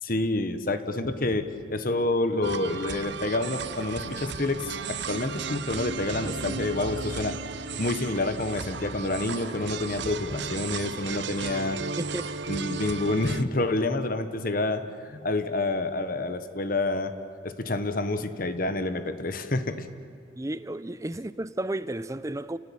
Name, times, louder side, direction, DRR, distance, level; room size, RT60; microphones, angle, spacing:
voice 1, 0.0-7.4 7.8-11.8 12.5-17.1 17.4-19.9, left 2 dB, 45° left, 1.2 m, -28 dB
sound 1, 2.4-13.4, right 5 dB, 60° right, 0.8 m, -35 dB
voice 2, 20.4-22.6, right 1 dB, 15° right, 0.6 m, -32 dB
30.0 x 18.0 x 8.6 m
head